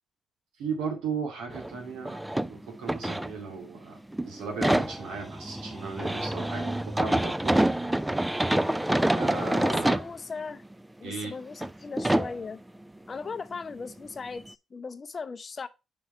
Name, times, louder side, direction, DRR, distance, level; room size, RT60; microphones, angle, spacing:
voice 1, 0.6-2.2 2.4-4.0 4.2-7.6 9.1-10.0 11.0-11.3, right 5 dB, 90° right, 2.3 m, -36 dB
sound 1, 1.5-1.8 2.0-3.8 4.1-10.1 10.7-10.8 11.5-11.7 12.0-12.4 14.0-14.1 14.5-14.6, right 1 dB, 10° right, 0.3 m, -27 dB
voice 2, 9.6-10.6 11.0-12.6 13.1-15.7, left 4 dB, 40° left, 0.6 m, -38 dB
5.4 x 4.8 x 4.6 m
cardioid pair, 70°, 0 cm